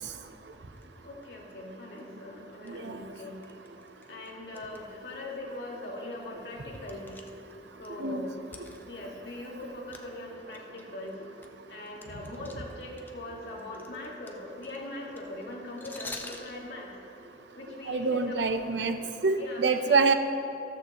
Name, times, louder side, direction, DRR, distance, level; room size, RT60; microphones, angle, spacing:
sound 1, 0.8-0.9 1.2-1.5 2.0-2.1 2.5-2.7 3.4-4.8 5.1-5.2 5.8-5.9 6.2-7.9 8.4-9.6 9.9-10.1 10.4-13.1 13.4-16.5, left 2 dB, 10° left, 0.5 m, -46 dB
voice 1, 1.0-3.4 4.1-7.2 7.8-8.3 8.8-11.2 11.7-16.9 17.6-18.5 19.4-20.1, left 2 dB, 75° left, -3 dB, 2.1 m, -41 dB
voice 2, 2.7-3.0 8.0-8.2 17.9-19.0 19.2-20.1, right 4 dB, 85° right, 8 dB, 0.7 m, -26 dB
14.0 x 13.0 x 3.0 m, 2.7 s
head